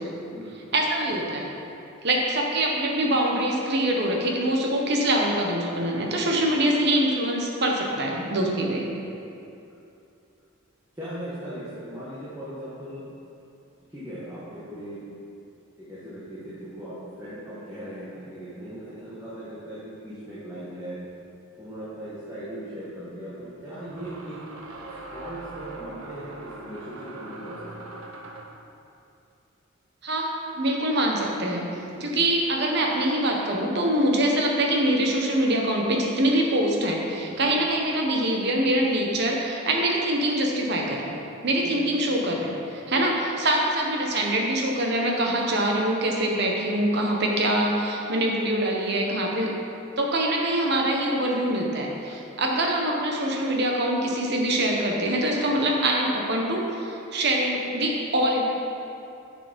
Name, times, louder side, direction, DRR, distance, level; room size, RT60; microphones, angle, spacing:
voice 1, 0.7-1.5 2.0-8.9 30.0-30.3 30.6-31.7 32.0-49.5 50.0-58.4, right 1 dB, 50° right, 0 dB, 1.1 m, -24 dB
voice 2, 10.9-13.0 13.9-15.2 15.8-21.0 21.5-24.4 25.1-27.9 31.8-32.0 37.2-37.5 41.5-41.8, right 1 dB, 15° right, -12 dB, 1.5 m, -39 dB
sound 1, 21.8-21.9 23.8-28.6, right 2 dB, 75° right, 0.9 m, -41 dB
7.2 x 6.8 x 5.2 m, 2.7 s
head